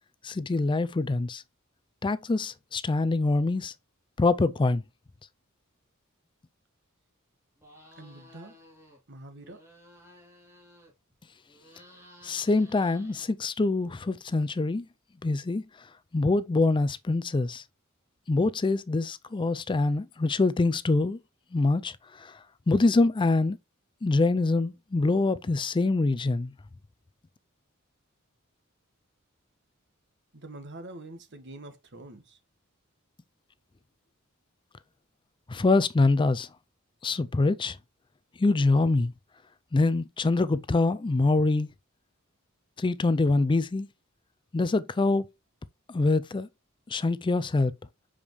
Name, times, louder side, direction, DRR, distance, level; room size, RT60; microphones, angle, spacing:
voice 1, 0.2-1.4 2.0-3.7 4.2-4.8 12.2-14.9 15.2-15.6 16.1-17.6 18.3-21.2 21.5-22.4 22.7-23.6 24.0-26.5 35.5-36.5 37.0-37.8 38.4-39.1 39.7-41.7 42.8-43.9 44.5-45.3 45.9-46.5 46.9-47.7, left 3 dB, 25° left, 0.4 m, -25 dB
sound 1, 7.6-9.0 9.3-11.1 11.4-13.7, equal, 15° right, 3.1 m, -55 dB
voice 2, 8.0-8.6 9.1-9.6 30.3-32.4, right 2 dB, 55° right, 1.5 m, -45 dB
7.1 x 5.0 x 3.1 m
head